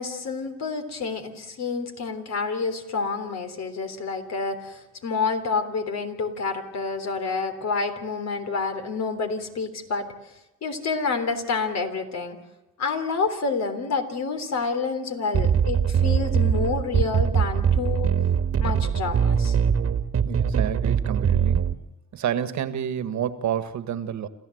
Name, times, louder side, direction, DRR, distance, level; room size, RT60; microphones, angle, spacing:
voice 1, 0.0-10.1 10.6-12.4 12.8-18.1 18.6-19.6, left 4 dB, 60° left, 7 dB, 3.5 m, -28 dB
sound 1, 15.3-21.7, right 7 dB, 50° right, 1.6 m, -22 dB
voice 2, 20.2-21.7 22.1-24.3, right 9 dB, 70° right, 11 dB, 1.7 m, -29 dB
28.0 x 15.0 x 7.9 m, 0.96 s
cardioid pair, 90°, 30 cm